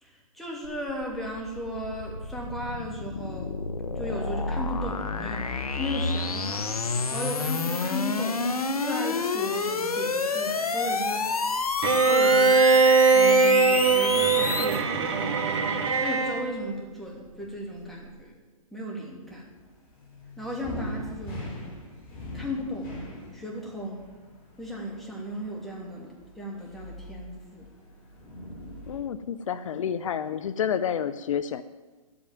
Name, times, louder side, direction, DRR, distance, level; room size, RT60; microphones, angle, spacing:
voice 1, 0.0-3.6 3.9-8.5 8.7-11.3 12.0-14.9 16.0-18.3 18.7-19.4 20.4-21.7 22.3-22.9 23.3-24.0 24.6-27.7, equal, ahead, -3 dB, 2.8 m, -35 dB
sound 1, 0.6-14.8, left 4 dB, 85° left, 1.3 m, -29 dB
Bowed string instrument, 11.8-16.5, right 4 dB, 50° right, 2.0 m, -21 dB
sound 2, 19.2-29.0, left 1 dB, 35° left, 4.7 m, -42 dB
voice 2, 28.9-31.6, left 8 dB, 60° left, 13 dB, 0.6 m, -29 dB
12.0 x 8.7 x 9.2 m, 1.3 s
hypercardioid pair, 130°, 19 cm